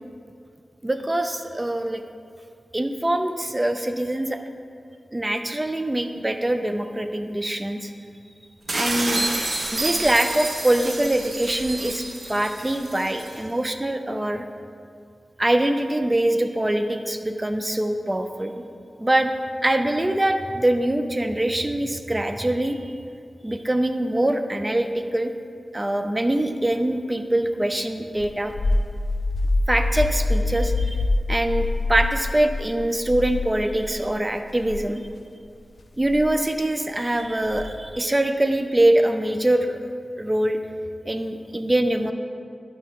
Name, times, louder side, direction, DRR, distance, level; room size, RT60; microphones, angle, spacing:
voice 1, 0.8-2.0 2.7-4.4 5.1-7.9 8.7-9.3 9.7-14.4 15.4-18.6 19.0-19.3 19.6-22.9 23.4-25.3 25.7-28.5 29.7-35.0 36.0-39.8 40.2-40.6 41.1-42.1, right 1 dB, 25° right, 7 dB, 0.5 m, -23 dB
sound 1, 8.7-13.4, right 2 dB, 65° right, 1.2 m, -29 dB
sound 2, 28.2-34.1 34.5-34.8 36.0-36.3 37.5-37.9, left 2 dB, 65° left, 0.4 m, -25 dB
11.5 x 4.7 x 3.7 m, 2.3 s
cardioid pair, 45°, 0 cm